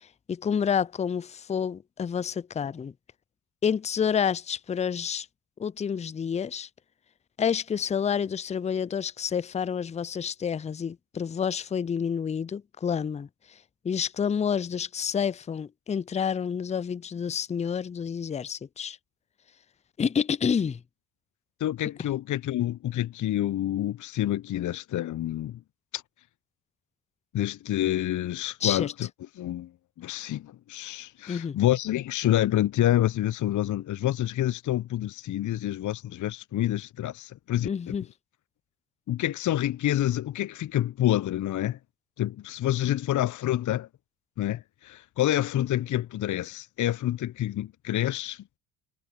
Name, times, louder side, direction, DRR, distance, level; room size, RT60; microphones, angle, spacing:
voice 1, 0.3-2.9 3.6-5.3 5.6-6.7 7.4-13.3 13.8-19.0 20.0-20.8 28.6-28.9 31.3-31.5 37.6-38.0, left 7 dB, 15° left, 0.5 m, -29 dB
voice 2, 21.6-25.6 25.9-26.0 27.3-29.1 29.3-29.7 30.0-37.9 39.1-41.8 42.2-43.9 44.4-48.4, left 13 dB, 45° left, 1.0 m, -28 dB
figure-of-eight pair, 50°, 43 cm